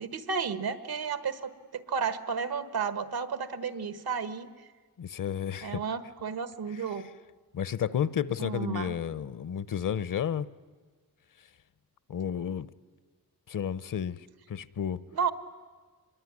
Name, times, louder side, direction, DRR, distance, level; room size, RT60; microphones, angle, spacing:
voice 1, 0.0-4.5 5.6-7.1 8.4-9.0 15.1-15.3, right 6 dB, 85° right, 12 dB, 1.5 m, -32 dB
voice 2, 5.0-5.8 7.5-10.5 12.1-12.7 13.5-15.0, left 8 dB, 60° left, 18 dB, 0.8 m, -32 dB
25.0 x 23.0 x 9.8 m, 1.5 s
wide cardioid pair, 105°, 36 cm